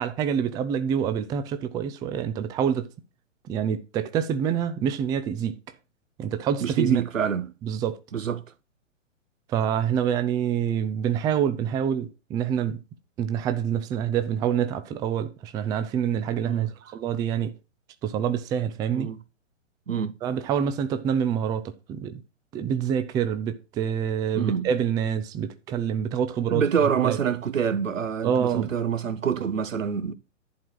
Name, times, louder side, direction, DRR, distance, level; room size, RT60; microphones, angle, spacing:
voice 1, 0.0-2.9 3.5-5.6 6.2-7.0 7.6-8.0 9.5-12.8 13.2-17.6 18.0-19.1 20.2-22.2 22.5-26.7 27.0-27.2 28.2-28.7, right 8 dB, 10° right, 0.4 m, -26 dB
voice 2, 6.6-7.5 8.1-8.4 16.4-16.7 18.9-19.2 19.9-20.2 24.3-24.7 26.5-30.1, right 7 dB, 80° right, 1.4 m, -26 dB
11.0 x 4.7 x 7.5 m
hypercardioid pair, 125°, 38 cm